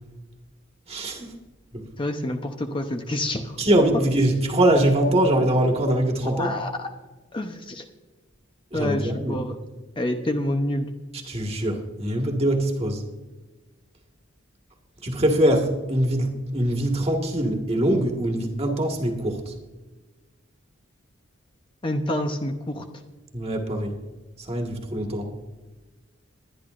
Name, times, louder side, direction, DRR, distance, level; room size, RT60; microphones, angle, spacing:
voice 1, 0.9-1.3 1.7-1.8 3.6-6.5 8.7-9.4 11.2-13.0 15.0-19.5 23.3-23.9 24.5-25.3, right 1 dB, 30° right, 2 dB, 1.7 m, -23 dB
voice 2, 2.0-3.6 6.3-6.9 7.3-7.8 8.7-9.6 10.0-10.9 21.8-22.8, left 1 dB, 25° left, 4 dB, 0.7 m, -27 dB
21.5 x 10.5 x 2.5 m, 1.2 s
head